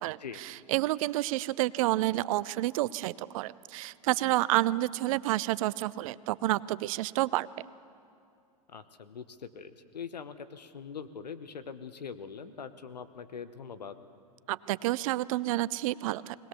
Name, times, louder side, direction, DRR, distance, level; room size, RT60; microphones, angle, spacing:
voice 1, 0.0-7.5 14.5-16.4, right 17 dB, 55° right, 19 dB, 0.5 m, -29 dB
voice 2, 8.7-14.0, left 6 dB, 90° left, 12 dB, 1.0 m, -43 dB
21.0 x 19.0 x 7.1 m, 2.5 s
hypercardioid pair, 105°, 21 cm